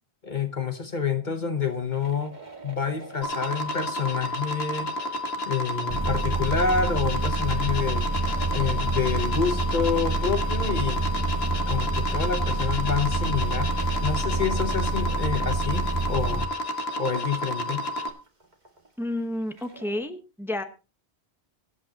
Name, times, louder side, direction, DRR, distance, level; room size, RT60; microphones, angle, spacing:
voice 1, 0.2-2.3 2.6-4.9 5.5-8.1 8.5-11.0 11.5-13.7 14.0-16.5 17.0-17.9, left 6 dB, 50° left, 1.1 m, -28 dB
sound 1, 1.5-4.1 5.7-5.8 6.1-9.5 10.2-10.3 11.0-11.4 11.7-15.5 15.7-15.8 16.7-16.8 17.9-20.0, right 4 dB, 45° right, 2.1 m, -48 dB
sound 2, 3.2-18.1, left 1 dB, 70° left, 1.6 m, -31 dB
sound 3, 5.9-16.5, right 3 dB, 25° right, 1.1 m, -27 dB
voice 2, 19.0-20.6, left 1 dB, ahead, 1.0 m, -30 dB
23.0 x 8.5 x 2.9 m
omnidirectional pair, 1.1 m